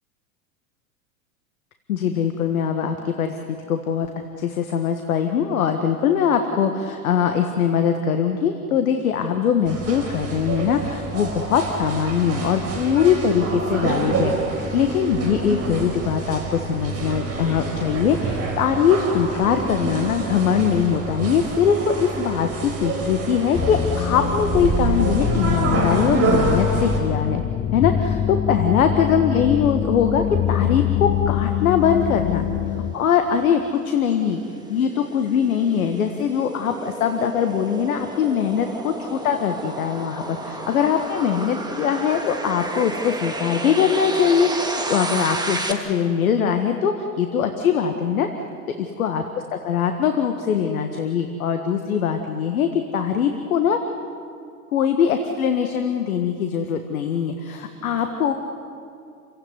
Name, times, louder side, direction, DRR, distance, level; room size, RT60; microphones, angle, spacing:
voice 1, 1.9-4.1 4.4-14.3 14.7-27.4 27.7-32.4 32.8-34.4 34.7-48.3 49.0-49.2 49.6-53.8 54.7-58.3, left 7 dB, 70° left, 6 dB, 1.7 m, -22 dB
sound 1, 9.7-27.0, right 3 dB, 35° right, 5.1 m, -27 dB
sound 2, 23.5-32.9, left 10 dB, 25° left, 0.7 m, -24 dB
sound 3, 32.5-45.7, right 2 dB, 10° right, 2.6 m, -32 dB
29.5 x 16.5 x 9.6 m, 2.4 s
figure-of-eight pair, 85°, 44 cm